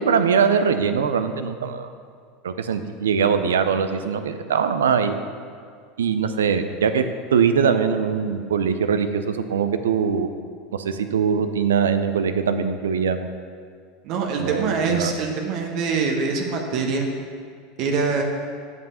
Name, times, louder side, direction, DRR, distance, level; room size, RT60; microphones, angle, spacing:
voice 1, 0.0-1.9 2.4-5.2 6.0-7.0 7.3-10.3 10.8-13.3 14.4-15.1, right 6 dB, 80° right, 9 dB, 0.5 m, -22 dB
voice 2, 14.0-17.1 17.8-18.2, right 4 dB, 55° right, 2 dB, 1.0 m, -24 dB
8.0 x 5.4 x 5.5 m, 2.1 s
hypercardioid pair, 80°, 0 cm